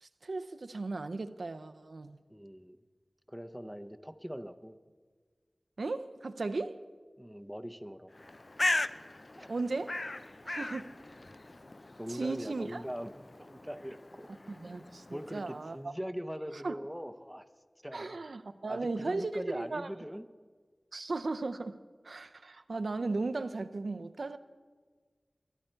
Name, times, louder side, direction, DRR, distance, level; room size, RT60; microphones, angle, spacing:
voice 1, 0.0-2.2 5.8-6.8 9.5-10.0 10.4-11.0 12.1-12.8 14.5-15.9 16.6-16.8 17.9-19.9 20.9-21.8 22.0-24.4, right 3 dB, 85° right, 0.5 m, -36 dB
voice 2, 2.3-2.8 3.3-4.8 7.2-8.1 9.4-9.5 12.0-14.3 15.1-17.5 17.8-18.2 18.7-20.3, equal, ahead, 0.7 m, -41 dB
Bird, 8.1-15.7, left 2 dB, 45° left, 0.4 m, -38 dB
23.5 x 9.9 x 4.5 m
wide cardioid pair, 65°, 0 cm